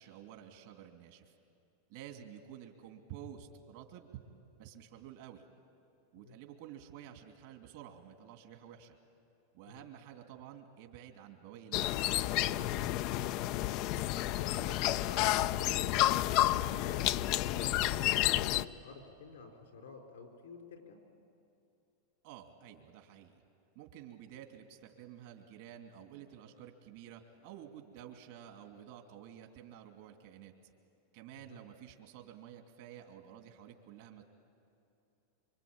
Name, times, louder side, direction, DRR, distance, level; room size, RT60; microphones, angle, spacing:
voice 1, 0.0-1.3 1.9-4.2 4.6-5.5 6.1-9.0 9.5-12.1 12.4-13.3 17.8-18.1 22.2-23.4 23.7-30.5 31.1-34.2, right 10 dB, 65° right, 4 dB, 2.8 m, -51 dB
sound 1, 11.7-18.7, left 15 dB, 55° left, 0.6 m, -30 dB
voice 2, 14.4-21.0 31.5-31.6, left 4 dB, 85° left, 2 dB, 4.5 m, -50 dB
26.0 x 25.0 x 8.9 m, 2.7 s
hypercardioid pair, 110°, 0 cm